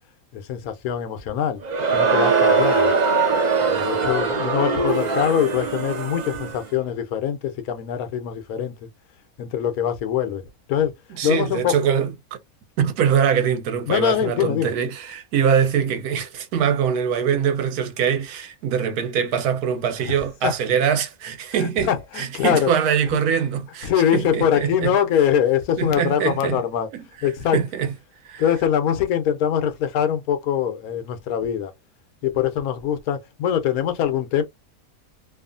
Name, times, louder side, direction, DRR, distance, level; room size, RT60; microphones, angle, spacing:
voice 1, 0.3-1.6 1.9-2.9 3.6-8.8 9.4-10.4 10.7-10.9 11.2-11.8 13.9-14.7 20.4-20.5 21.6-22.7 23.8-26.9 27.2-27.6 28.4-31.7 32.2-34.4, left 9 dB, 80° left, 1.0 m, -23 dB
Crowd, 1.6-6.6, right 4 dB, 50° right, 0.5 m, -21 dB
voice 2, 11.1-12.1 12.8-24.9 25.8-26.6 26.9-27.0 27.5-27.9 28.2-28.4, right 8 dB, 85° right, 1.2 m, -23 dB
2.7 x 2.4 x 2.5 m
omnidirectional pair, 1.6 m